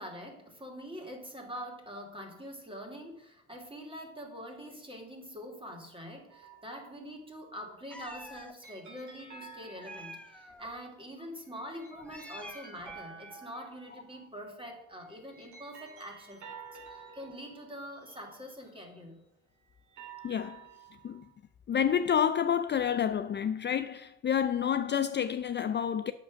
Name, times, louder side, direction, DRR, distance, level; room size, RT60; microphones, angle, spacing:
voice 1, 0.0-16.5 16.9-19.2, equal, 15° right, 2.8 m, -44 dB
sound 1, 6.3-7.0 8.6-10.6 11.5-14.3 15.0-19.1 19.7-21.3, right 5 dB, 70° right, 2.8 m, -51 dB
Meow, 7.9-8.5 9.8-10.7 11.9-13.0, left 1 dB, 5° left, 0.7 m, -47 dB
voice 2, 20.2-20.6 21.0-21.2 21.7-26.1, left 8 dB, 35° left, 0.4 m, -29 dB
8.8 x 6.3 x 6.2 m
cardioid pair, 90°, 30 cm